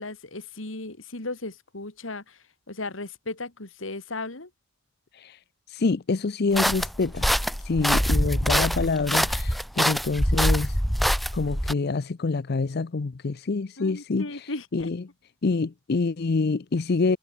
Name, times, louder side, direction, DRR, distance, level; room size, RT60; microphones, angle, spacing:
voice 1, 0.0-4.5 13.8-14.9, left 2 dB, 85° left, 2.8 m, -36 dB
voice 2, 5.7-7.3 7.6-10.8 11.1-15.0 15.4-17.2, left 3 dB, 55° left, 0.6 m, -26 dB
sound 1, 6.6-11.7, equal, ahead, 0.5 m, -24 dB
head